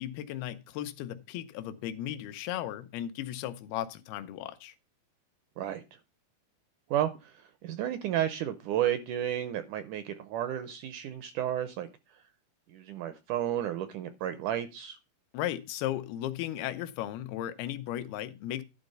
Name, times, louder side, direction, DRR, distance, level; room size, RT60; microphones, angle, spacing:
voice 1, 0.0-4.8 15.3-18.6, left 12 dB, 85° left, 2.7 m, -36 dB
voice 2, 6.9-11.9 12.7-15.0, right 11 dB, 85° right, 1.7 m, -32 dB
11.5 x 4.0 x 6.6 m
omnidirectional pair, 4.3 m